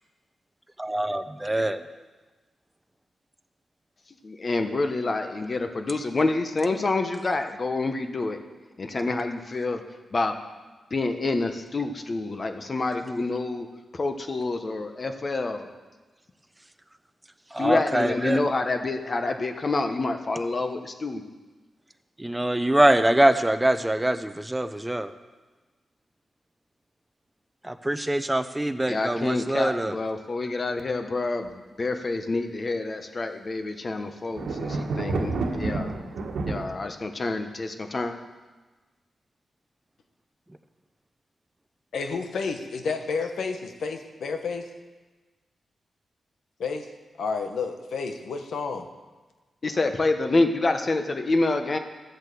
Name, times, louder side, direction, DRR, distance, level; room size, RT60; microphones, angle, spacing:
voice 1, 0.8-1.8 17.5-18.4 22.2-25.1 27.6-30.0, right 1 dB, 10° right, 10 dB, 0.8 m, -24 dB
voice 2, 4.2-8.4 8.8-9.8 10.1-10.3 10.9-13.7 13.9-15.7 17.6-21.2 28.9-35.9 36.5-38.1 49.6-51.8, left 3 dB, 40° left, 6 dB, 1.2 m, -27 dB
sound 1, 34.4-36.6, right 3 dB, 90° right, 1.6 m, -29 dB
voice 3, 41.9-44.6 46.6-46.9 47.2-48.9, left 4 dB, 80° left, 6 dB, 1.3 m, -30 dB
13.5 x 8.1 x 6.9 m, 1.3 s
cardioid pair, 85°, 0 cm